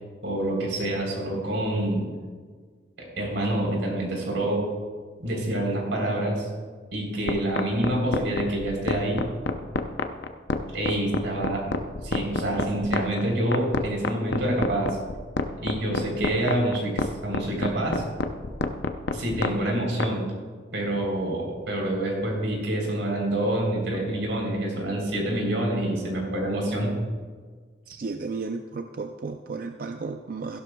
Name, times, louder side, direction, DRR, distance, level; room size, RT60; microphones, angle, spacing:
voice 1, 0.2-2.0 3.0-4.6 5.2-6.5 6.9-9.2 10.7-11.6 12.0-15.0 15.6-18.0 19.1-20.3 20.7-26.9, right 1 dB, 90° right, -1 dB, 3.6 m, -27 dB
sound 1, 7.3-20.1, left 3 dB, 65° left, 0.6 m, -27 dB
voice 2, 27.9-30.6, right 4 dB, 50° right, 6 dB, 0.4 m, -33 dB
15.5 x 12.0 x 2.3 m, 1.5 s
head